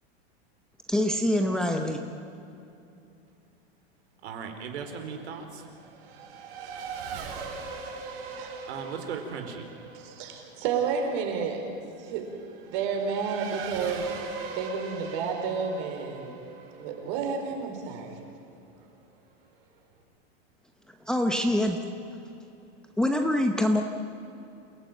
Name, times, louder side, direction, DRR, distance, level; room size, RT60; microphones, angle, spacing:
voice 1, 0.9-2.1 21.1-21.8 23.0-23.8, left 1 dB, ahead, 3 dB, 0.8 m, -24 dB
voice 2, 4.2-5.6 8.7-9.7, right 6 dB, 80° right, 5 dB, 4.3 m, -37 dB
Race car auto racing / Accelerating revving vroom, 4.3-18.4, right 4 dB, 65° right, 5.7 m, -41 dB
voice 3, 9.9-11.7 12.0-12.3 12.7-14.1 14.5-16.3 16.8-18.2, right 6 dB, 45° right, 3 dB, 4.8 m, -31 dB
28.5 x 17.5 x 9.1 m, 2.7 s
supercardioid pair, 170°, 32 cm